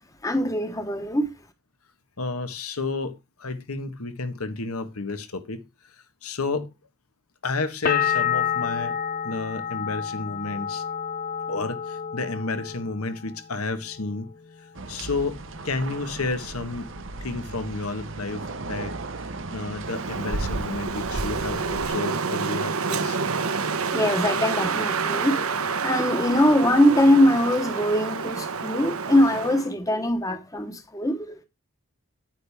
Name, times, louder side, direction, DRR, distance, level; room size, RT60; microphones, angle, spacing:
voice 1, 0.2-1.3 23.9-31.4, left 1 dB, 15° left, 1.1 m, -22 dB
voice 2, 2.2-5.6 6.2-6.7 7.4-8.9 9.2-10.8 11.5-14.3 14.6-16.9 17.2-18.9 19.5-23.2, left 3 dB, 90° left, 1.3 m, -31 dB
sound 1, 7.9-13.5 13.8-14.5, left 8 dB, 40° left, 0.6 m, -29 dB
sound 2, 14.7-21.9, right 2 dB, 60° right, 0.9 m, -35 dB
Wind, 19.8-29.7, right 5 dB, 80° right, 1.0 m, -28 dB
8.9 x 8.8 x 3.5 m
head